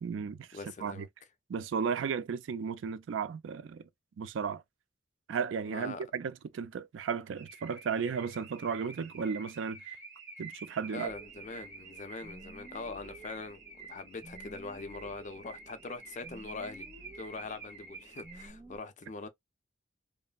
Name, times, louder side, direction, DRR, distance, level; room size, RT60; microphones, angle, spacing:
voice 1, 0.0-1.1 1.5-3.9 4.2-4.6 5.3-9.8 10.4-11.1, right 6 dB, 85° right, 0.4 m, -34 dB
voice 2, 0.5-1.1 5.7-6.0 10.9-16.9 17.1-19.3, left 3 dB, 40° left, 0.5 m, -42 dB
Car / Alarm, 7.3-18.5, right 4 dB, 60° right, 1.7 m, -49 dB
sound 1, 11.1-18.8, right 1 dB, 20° right, 0.5 m, -54 dB
3.1 x 2.0 x 2.2 m
head